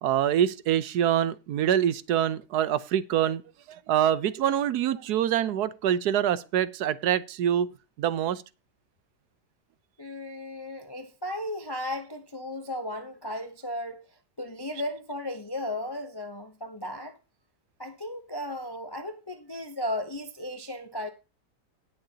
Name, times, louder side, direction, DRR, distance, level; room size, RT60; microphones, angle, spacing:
voice 1, 0.0-3.4 3.7-7.7 8.0-8.4, right 10 dB, 70° right, 1.2 m, -25 dB
voice 2, 10.0-17.2 17.8-21.1, left 1 dB, 40° left, 0.3 m, -35 dB
18.0 x 6.8 x 2.8 m
omnidirectional pair, 1.8 m